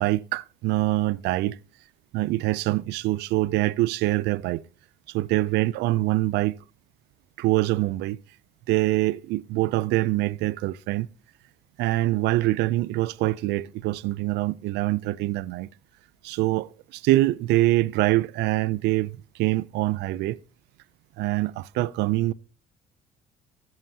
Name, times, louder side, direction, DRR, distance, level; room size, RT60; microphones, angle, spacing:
voice 1, 0.0-1.6 2.1-4.6 5.1-6.6 7.4-8.2 8.7-11.1 11.8-15.7 16.2-20.4 21.2-22.3, right 18 dB, 85° right, 0.4 m, -24 dB
16.5 x 7.6 x 2.8 m
cardioid pair, 110°, 17 cm